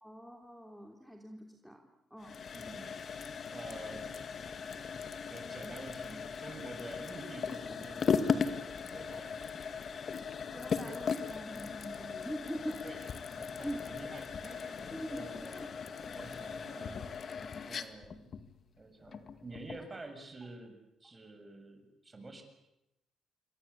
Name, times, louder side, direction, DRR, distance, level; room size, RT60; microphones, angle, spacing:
voice 1, 0.0-1.8 2.1-2.4 10.5-13.0 13.6-13.9 14.9-15.7 19.7-19.8, equal, ahead, 3 dB, 3.3 m, -43 dB
sound 1, 2.2-19.9, left 6 dB, 50° left, 2.0 m, -38 dB
voice 2, 2.5-2.9 3.5-4.2 5.2-8.7 8.9-9.4 12.8-15.6 16.0-17.1 17.6-18.3 18.8-22.4, right 2 dB, 25° right, 7 dB, 7.0 m, -49 dB
28.0 x 23.0 x 8.6 m, 0.88 s
cardioid pair, 90°, 0 cm